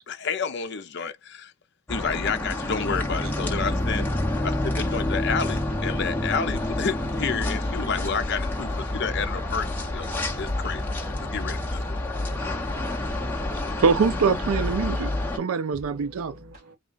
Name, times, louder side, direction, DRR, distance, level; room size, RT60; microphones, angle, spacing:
voice 1, 0.1-1.5 1.9-4.1 4.4-12.0, left 6 dB, 50° left, 0.5 m, -30 dB
sound 1, 1.9-15.4, left 1 dB, 10° left, 0.7 m, -28 dB
voice 2, 7.1-7.9 10.3-11.1 15.9-16.8, left 2 dB, 40° right, 1.8 m, -50 dB
voice 3, 13.8-16.4, right 5 dB, 75° right, 0.4 m, -24 dB
3.5 x 2.3 x 3.9 m
head